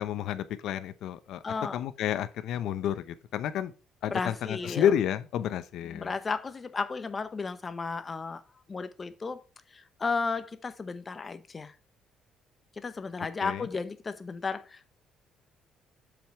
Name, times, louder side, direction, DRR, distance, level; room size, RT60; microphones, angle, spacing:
voice 1, 0.0-1.4 1.7-3.7 4.0-6.1 13.4-13.7, left 10 dB, 70° left, 0.7 m, -30 dB
voice 2, 1.4-1.8 4.1-4.9 5.8-8.4 8.7-9.4 9.7-11.7 12.8-14.9, left 4 dB, 25° left, 0.7 m, -34 dB
7.6 x 5.3 x 4.4 m
cardioid pair, 150°, 0 cm